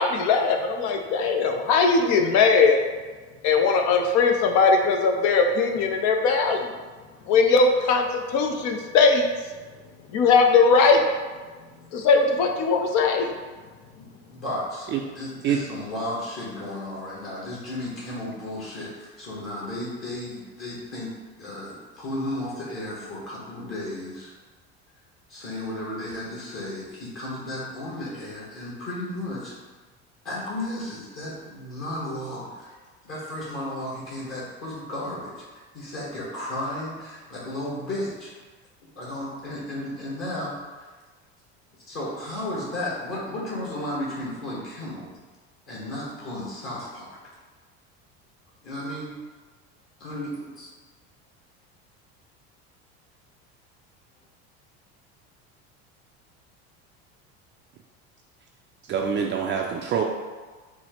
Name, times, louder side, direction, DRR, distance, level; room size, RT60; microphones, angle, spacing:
voice 1, 0.0-2.8 3.4-6.6 7.3-8.0 8.3-9.2 10.1-11.0 11.9-13.3, left 4 dB, 60° left, 4 dB, 0.6 m, -19 dB
voice 2, 14.0-21.1 21.4-24.3 25.3-29.5 30.2-32.7 33.0-35.4 35.7-38.3 39.0-40.5 41.9-45.2 45.7-47.4 48.6-49.1 50.0-50.7, left 1 dB, 40° left, -7 dB, 1.4 m, -34 dB
voice 3, 58.9-60.0, right 7 dB, 35° right, 1 dB, 0.4 m, -25 dB
4.4 x 2.1 x 4.3 m, 1.4 s
supercardioid pair, 110°, 33 cm